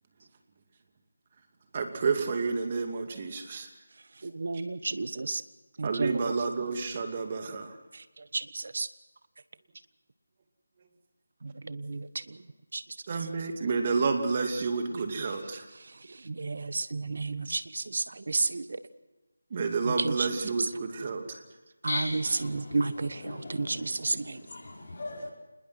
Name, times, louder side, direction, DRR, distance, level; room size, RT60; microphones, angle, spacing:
voice 1, 1.7-3.7 5.8-7.7 13.1-15.7 19.5-21.4, right 4 dB, 35° right, 2.5 m, -30 dB
voice 2, 4.2-5.4 5.8-6.3 7.9-8.9 11.4-12.4 12.7-12.8 15.8-18.8 19.8-20.7 21.8-24.4, right 3 dB, 55° right, 1.2 m, -32 dB
voice 3, 21.9-25.3, left 2 dB, 50° left, 5.7 m, -39 dB
26.5 x 21.0 x 6.1 m
figure-of-eight pair, 165°, 0 cm